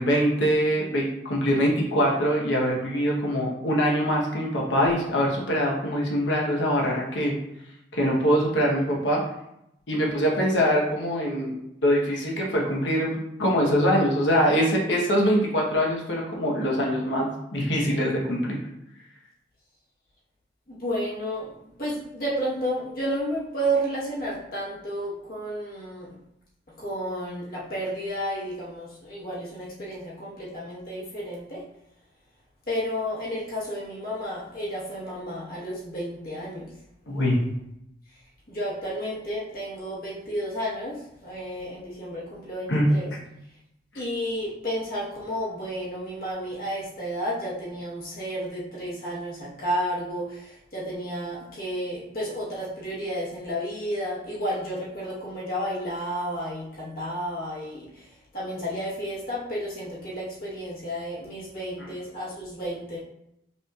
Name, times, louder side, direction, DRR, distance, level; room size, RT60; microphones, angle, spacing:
voice 1, 0.0-7.4 7.9-9.2 9.9-11.5 11.8-18.6 37.1-37.4 42.7-42.9 61.8-61.9, equal, 85° left, -2 dB, 1.0 m, -23 dB
voice 2, 20.8-26.1 26.8-31.6 32.7-36.7 38.5-41.0 41.2-43.1 43.9-57.9 58.3-63.0, equal, 50° left, -7 dB, 1.2 m, -31 dB
5.5 x 3.1 x 2.4 m, 0.80 s
head